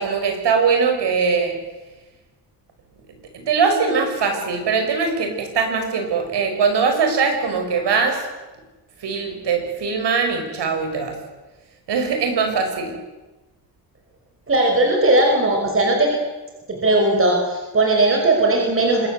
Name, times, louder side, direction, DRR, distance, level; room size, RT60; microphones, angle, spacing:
voice 1, 0.0-1.5 3.3-8.3 9.0-11.1 11.9-13.0, right 5 dB, 75° right, 5 dB, 6.1 m, -21 dB
voice 2, 14.5-16.1 16.7-19.1, right 2 dB, 30° right, 1 dB, 5.7 m, -18 dB
26.0 x 22.0 x 8.0 m, 1.2 s
cardioid pair, 125°, 41 cm